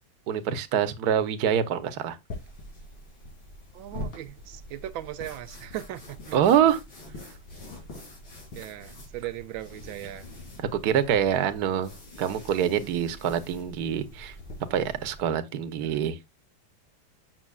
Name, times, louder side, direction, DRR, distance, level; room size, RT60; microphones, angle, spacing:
voice 1, 0.3-2.2 6.3-6.8 10.6-11.9 12.2-14.3 14.7-16.2, right 9 dB, 60° right, 1.3 m, -25 dB
sound 1, 2.3-15.2, left 1 dB, 85° left, 3.9 m, -44 dB
voice 2, 3.7-6.4 8.5-10.3 15.8-16.0, right 13 dB, 85° right, 1.4 m, -38 dB
7.4 x 6.1 x 2.3 m
omnidirectional pair, 2.1 m